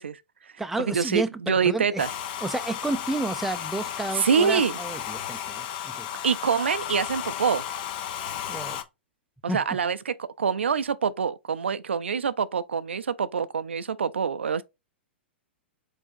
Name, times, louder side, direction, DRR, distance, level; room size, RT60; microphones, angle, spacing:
voice 1, 0.0-0.5 0.9-2.1 4.1-4.8 6.2-7.6 9.4-14.6, right 6 dB, 80° right, 0.4 m, -25 dB
voice 2, 0.6-2.0 2.4-6.1 8.5-8.8 9.5-9.6, right 3 dB, 5° right, 0.4 m, -31 dB
Domestic sounds home sounds, 2.0-8.8, left 10 dB, 55° left, 0.7 m, -34 dB
4.6 x 4.2 x 2.6 m
hypercardioid pair, 110°, 6 cm